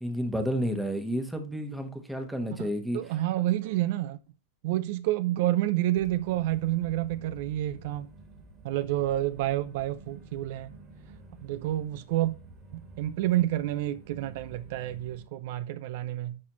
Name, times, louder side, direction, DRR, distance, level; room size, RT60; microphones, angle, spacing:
voice 1, 0.0-3.0, equal, ahead, 1.1 m, -31 dB
voice 2, 2.9-4.2 4.6-8.1 8.6-10.7 11.4-12.4 12.7-16.4, right 14 dB, 55° right, 0.4 m, -29 dB
sound 1, 5.9-15.3, right 2 dB, 20° right, 2.1 m, -50 dB
10.5 x 4.1 x 3.0 m
supercardioid pair, 150°, 0 cm